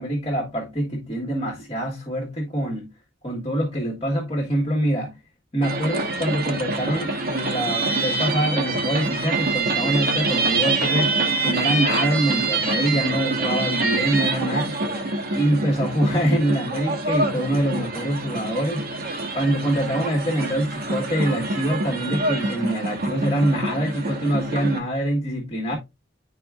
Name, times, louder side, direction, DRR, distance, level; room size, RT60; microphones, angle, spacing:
voice 1, 0.0-2.9 3.2-5.1 5.5-11.2 11.4-14.8 15.3-19.1 19.3-25.8, right 1 dB, 30° left, 1.6 m, -24 dB
sound 1, 5.6-24.8, right 3 dB, 50° right, 1.2 m, -26 dB
10.5 x 4.6 x 2.3 m
head